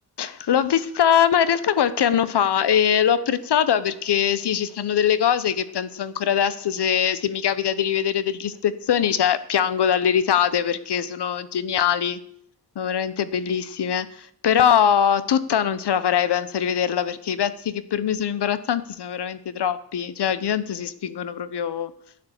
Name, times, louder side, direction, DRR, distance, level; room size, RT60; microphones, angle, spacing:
voice 1, 0.2-12.2 12.8-14.1 14.4-21.9, left 9 dB, 70° left, 15 dB, 1.0 m, -22 dB
11.5 x 9.6 x 8.1 m, 0.67 s
wide cardioid pair, 110°, 42 cm